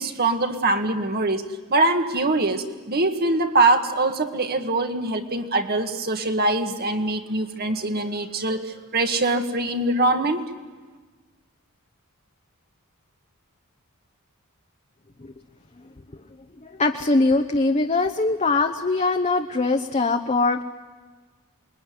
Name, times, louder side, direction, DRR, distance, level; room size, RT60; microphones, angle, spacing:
voice 1, 0.0-1.5 1.7-10.5, right 2 dB, 45° right, 6 dB, 1.9 m, -23 dB
voice 2, 16.6-20.6, left 3 dB, 30° left, 4 dB, 1.0 m, -22 dB
28.0 x 22.0 x 9.5 m, 1.4 s
head